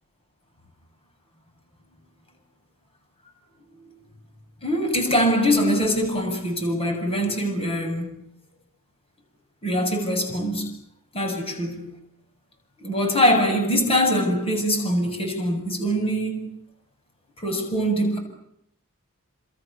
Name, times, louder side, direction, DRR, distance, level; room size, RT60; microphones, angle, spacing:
voice 1, 4.6-8.2 9.6-10.7 11.1-11.9 12.8-16.4 17.4-18.2, equal, 25° left, 7.5 m, -23 dB
29.5 x 28.0 x 7.0 m
head